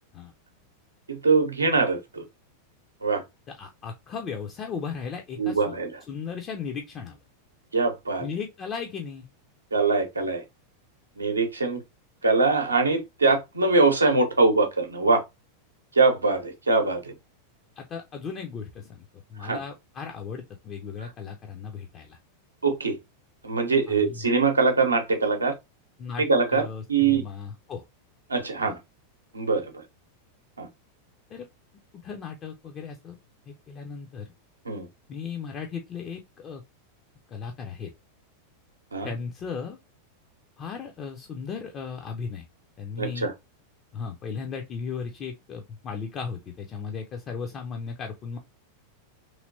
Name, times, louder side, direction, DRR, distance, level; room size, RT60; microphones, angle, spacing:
voice 1, 1.1-2.2 3.0-3.2 5.4-6.0 7.7-8.3 9.7-10.4 11.2-11.8 12.2-15.2 15.9-17.1 19.4-19.6 22.6-23.0 23.4-25.5 26.2-27.2 28.3-28.8 29.3-29.8 30.6-30.7 34.6-34.9 38.9-39.1 43.0-43.3, right 4 dB, 80° right, 0.7 m, -23 dB
voice 2, 3.6-5.7 6.1-7.2 8.2-9.3 17.8-22.2 23.9-24.2 26.0-26.2 26.5-27.8 31.3-31.5 32.0-33.2 33.5-34.3 35.1-36.6 37.3-37.9 39.0-39.8 40.6-42.5 42.8-43.3 43.9-48.4, left 6 dB, 30° left, 0.5 m, -36 dB
3.1 x 2.8 x 2.6 m
figure-of-eight pair, 90°, 0 cm